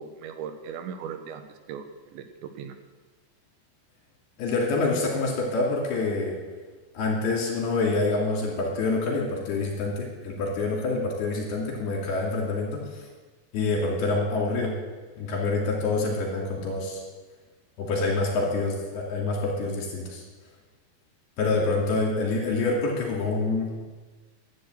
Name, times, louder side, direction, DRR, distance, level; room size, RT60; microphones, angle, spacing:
voice 1, 0.0-1.8 2.1-2.7 21.6-21.7, right 7 dB, 80° right, 8 dB, 3.3 m, -38 dB
voice 2, 4.4-6.4 6.9-13.0 13.5-14.7 15.2-17.0 17.8-20.2 21.4-23.8, left 3 dB, 60° left, -1 dB, 4.4 m, -26 dB
11.5 x 10.5 x 7.8 m, 1.3 s
omnidirectional pair, 5.2 m